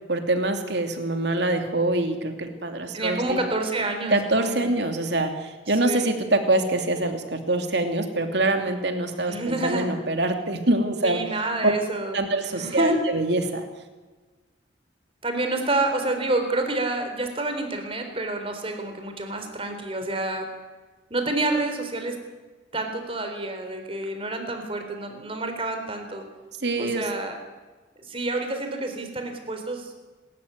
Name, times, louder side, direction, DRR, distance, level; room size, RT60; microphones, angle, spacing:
voice 1, 0.1-3.4 4.1-11.2 11.6-11.7 12.1-13.7 26.6-27.1, right 2 dB, 65° right, 5 dB, 2.9 m, -24 dB
voice 2, 2.9-4.6 5.9-6.1 9.3-9.9 11.0-12.2 12.5-13.0 15.2-20.4 21.1-22.2 22.7-26.2 26.8-27.4 28.0-30.1, right 2 dB, 30° right, 5 dB, 3.9 m, -28 dB
27.5 x 13.5 x 9.5 m, 1.3 s
head